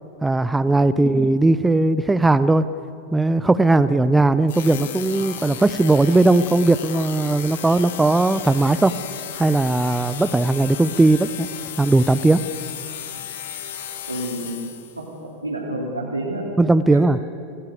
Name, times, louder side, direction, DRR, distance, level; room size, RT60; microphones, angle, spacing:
voice 1, 0.2-2.6 3.1-8.9 9.4-11.5 11.8-12.4 16.6-17.2, right 2 dB, 10° right, 15 dB, 0.6 m, -18 dB
sound 1, 4.5-15.0, left 9 dB, 55° left, 2.0 m, -34 dB
voice 2, 14.1-14.6 14.9-15.1 15.4-16.4 16.9-17.0, right 1 dB, 85° right, -5 dB, 3.4 m, -29 dB
27.0 x 18.5 x 6.9 m, 2.6 s
figure-of-eight pair, 90°, 0 cm